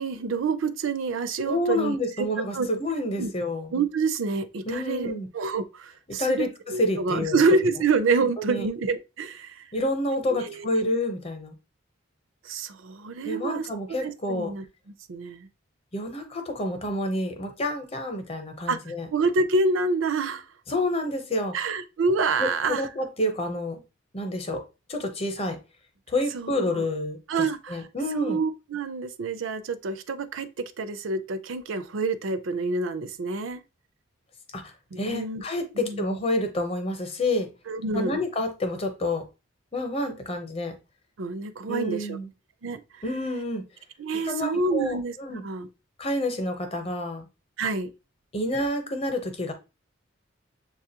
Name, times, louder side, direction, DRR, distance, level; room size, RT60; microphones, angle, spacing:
voice 1, 0.0-2.3 2.5-2.7 3.2-3.3 3.7-9.7 10.3-10.7 12.4-13.7 14.0-14.6 15.1-15.5 18.7-18.8 19.1-20.4 21.5-22.9 26.3-26.8 27.3-27.9 28.1-30.5 30.8-33.6 34.9-35.4 35.8-36.0 37.7-38.2 41.2-42.2 42.6-42.8 44.0-45.2 45.4-45.7 47.6-47.9, right 3 dB, 75° right, 0.5 m, -27 dB
voice 2, 1.5-3.7 4.7-5.3 6.1-7.4 8.5-8.7 9.7-11.5 13.2-14.5 15.9-19.1 20.7-21.5 22.4-23.8 24.1-24.6 24.9-25.6 26.1-28.4 34.5-34.6 35.0-37.5 37.9-39.2 39.7-40.7 41.7-42.3 43.0-43.6 44.2-45.4 46.0-47.3 48.3-49.5, left 1 dB, 30° left, 0.8 m, -28 dB
7.0 x 2.4 x 2.8 m
head